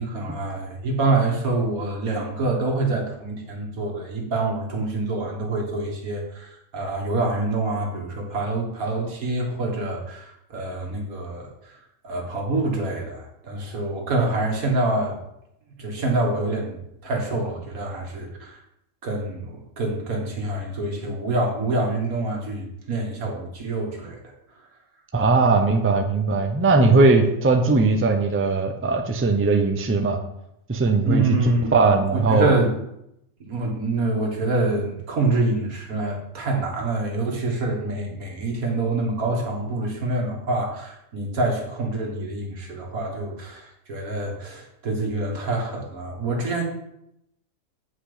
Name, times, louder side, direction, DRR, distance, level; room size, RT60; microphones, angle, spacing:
voice 1, 0.0-11.8 12.0-15.2 15.8-16.8 17.0-18.6 19.0-24.3 31.0-32.7 33.4-46.6, right 2 dB, 85° right, 1 dB, 2.1 m, -26 dB
voice 2, 25.1-30.2 30.7-31.2 31.7-32.5, right 3 dB, 15° right, 4 dB, 0.5 m, -19 dB
8.2 x 5.3 x 5.0 m, 0.81 s
omnidirectional pair, 1.4 m